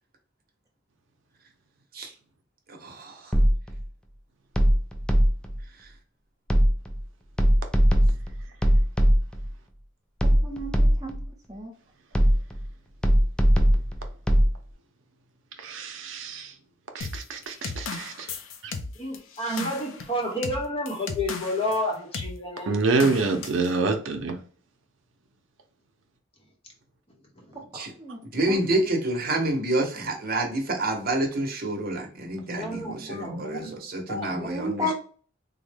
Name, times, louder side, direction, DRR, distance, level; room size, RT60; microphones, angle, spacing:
voice 1, 2.7-3.3 5.8-5.9 27.7-27.9 28.3-34.9, right 1 dB, 50° right, 0.8 m, -28 dB
sound 1, 3.3-3.8 4.6-5.6 6.5-7.0 7.4-9.5 10.2-11.3 12.1-12.7 13.0-14.5, equal, 5° left, 0.4 m, -20 dB
voice 2, 10.2-11.7 27.5-28.2 28.5-28.6 34.5-34.9, left 1 dB, 20° right, 0.9 m, -33 dB
voice 3, 15.6-16.5 16.9-18.3 18.6-18.7 22.7-24.4, right 3 dB, 75° right, 0.6 m, -26 dB
sound 2, 17.0-21.8 22.1-22.4 23.0-23.7, left 4 dB, 75° left, 0.5 m, -35 dB
voice 4, 18.9-22.8 27.3-27.6 32.4-33.8 34.1-34.9, left 1 dB, 30° left, 0.9 m, -31 dB
3.7 x 2.1 x 3.3 m
head